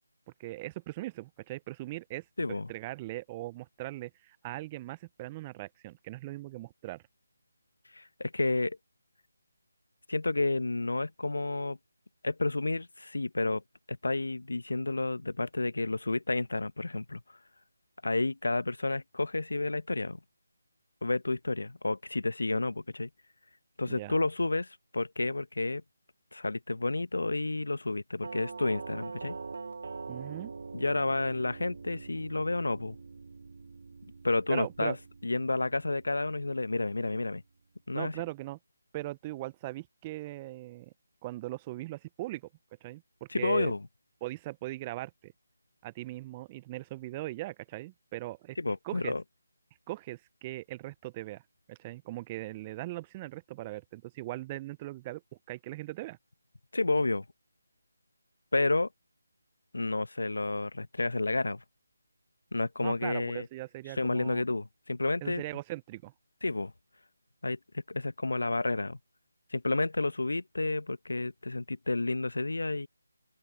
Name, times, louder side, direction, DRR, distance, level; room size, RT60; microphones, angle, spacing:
voice 1, 0.4-2.3 2.7-7.0 23.9-24.2 30.1-30.5 34.5-35.0 37.9-38.6 38.9-40.9 41.2-42.4 42.8-43.7 44.2-45.3 45.8-48.6 48.8-49.1 49.9-51.4 51.7-55.2 55.5-56.2 62.8-64.4 65.2-66.1, right 18 dB, 20° right, 0.6 m, -39 dB
voice 2, 2.4-2.7 7.9-8.8 10.1-11.8 12.2-13.6 13.9-17.2 18.0-20.2 21.0-23.1 23.8-25.8 26.3-29.4 30.7-33.0 34.2-35.0 35.2-37.4 37.9-38.2 43.3-43.8 48.6-49.2 56.7-57.2 58.5-58.9 59.7-61.6 62.5-63.5 64.0-65.4 66.4-66.7 67.4-67.6 67.9-69.0 69.5-72.9, left 2 dB, 75° left, 0.9 m, -30 dB
Doorbell, 28.2-37.1, right 4 dB, 55° right, 2.1 m, -44 dB
open air
figure-of-eight pair, 160°, 0 cm